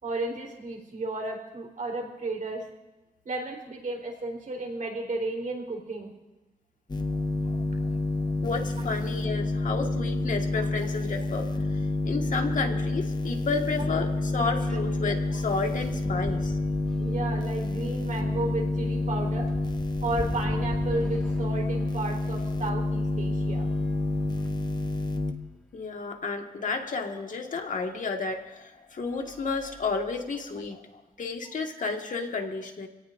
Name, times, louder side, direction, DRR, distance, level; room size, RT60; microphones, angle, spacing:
voice 1, 0.0-2.6 3.3-6.1 9.6-9.7 10.6-10.7 14.7-14.8 17.0-19.5 20.0-23.7 31.4-31.5, right 2 dB, 60° right, 0 dB, 3.9 m, -33 dB
sound 1, 6.9-25.3, left 2 dB, 25° left, 1.2 m, -28 dB
voice 2, 7.5-7.9 8.4-16.6 25.7-32.9, left 4 dB, 55° left, 3 dB, 1.7 m, -32 dB
sound 2, 13.7-22.7 23.4-24.8 25.4-25.5 25.8-25.9 27.6-27.7 28.3-28.5 29.0-30.3, equal, 5° left, 1.3 m, -43 dB
26.5 x 17.5 x 2.6 m, 1.1 s
wide cardioid pair, 110°, 15 cm